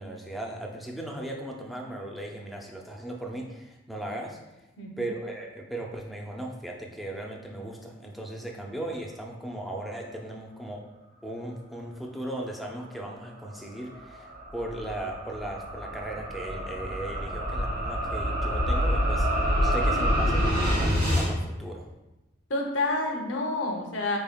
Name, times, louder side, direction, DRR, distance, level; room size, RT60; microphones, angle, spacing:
voice 1, 0.0-4.4 5.0-10.8 11.2-21.9, right 1 dB, ahead, 0 dB, 0.4 m, -37 dB
voice 2, 4.8-5.1 22.5-24.2, left 2 dB, 70° left, 1 dB, 0.7 m, -29 dB
sound 1, 13.4-21.3, equal, 55° right, 1.4 m, -27 dB
4.1 x 3.5 x 2.2 m, 0.99 s
head